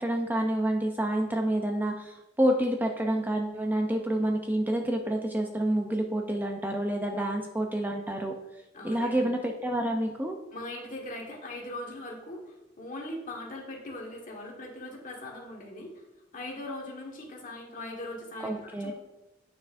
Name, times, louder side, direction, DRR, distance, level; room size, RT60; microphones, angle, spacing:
voice 1, 0.0-8.3 8.8-10.4 18.4-18.9, right 1 dB, 10° right, 3 dB, 0.4 m, -28 dB
voice 2, 8.7-9.3 10.5-12.4 12.8-15.9 16.3-18.9, left 1 dB, 45° left, -1 dB, 1.4 m, -40 dB
8.8 x 5.9 x 2.5 m, 1.0 s
head